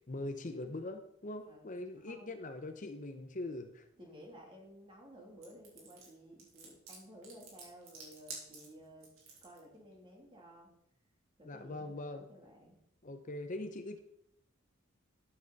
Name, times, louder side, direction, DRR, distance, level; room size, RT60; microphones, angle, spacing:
voice 1, 0.1-3.9 11.4-12.2 13.0-14.0, left 2 dB, 40° left, 7 dB, 0.8 m, -42 dB
voice 2, 2.0-2.3 4.0-9.1 9.4-10.7 11.4-12.8, equal, 25° right, -1 dB, 3.2 m, -55 dB
sound 1, 5.4-9.6, right 4 dB, 85° right, 3.9 m, -50 dB
13.0 x 9.0 x 4.1 m, 0.76 s
head